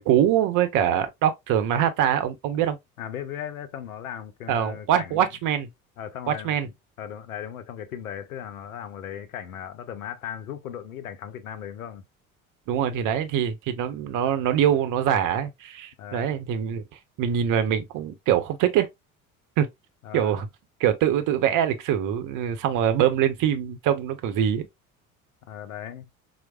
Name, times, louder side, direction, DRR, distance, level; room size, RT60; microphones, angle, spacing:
voice 1, 0.0-2.8 4.5-5.7 6.3-6.7 12.7-16.8 17.2-18.9 19.6-19.7 20.1-20.5 20.8-24.7, right 10 dB, 50° right, 0.7 m, -23 dB
voice 2, 3.0-5.3 6.0-12.0 16.0-16.4 20.0-20.4 25.4-26.1, left 9 dB, 80° left, 0.6 m, -37 dB
4.5 x 2.1 x 2.3 m
figure-of-eight pair, 60°, 42 cm